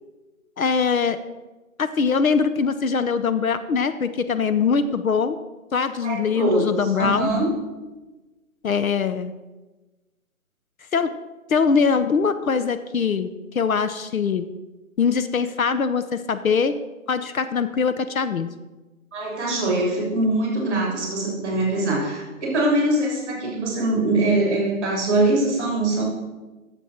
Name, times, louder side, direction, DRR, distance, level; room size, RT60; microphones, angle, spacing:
voice 1, 0.6-1.2 1.8-5.4 5.7-7.3 8.6-9.3 10.9-11.1 11.5-14.5 15.0-16.7 17.1-18.5, left 5 dB, 70° left, 11 dB, 0.8 m, -22 dB
voice 2, 6.0-7.4 19.1-26.0, right 2 dB, 15° right, -2 dB, 3.2 m, -23 dB
10.5 x 7.2 x 4.4 m, 1.2 s
hypercardioid pair, 165°, 42 cm